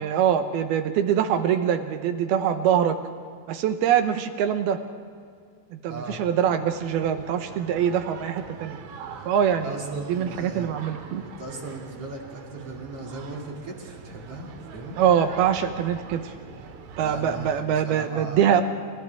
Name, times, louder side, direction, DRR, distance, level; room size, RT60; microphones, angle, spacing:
voice 1, 0.0-3.0 3.5-4.8 5.8-8.8 9.3-11.2 15.0-16.3 17.0-18.6, right 9 dB, 75° right, 7 dB, 2.5 m, -23 dB
voice 2, 5.9-6.2 9.6-10.7 11.2-15.0 17.0-18.4, right 2 dB, 40° right, -1 dB, 3.0 m, -38 dB
sound 1, 6.7-17.6, right 6 dB, 90° right, 4.2 m, -43 dB
29.5 x 29.0 x 3.6 m, 2.2 s
omnidirectional pair, 5.3 m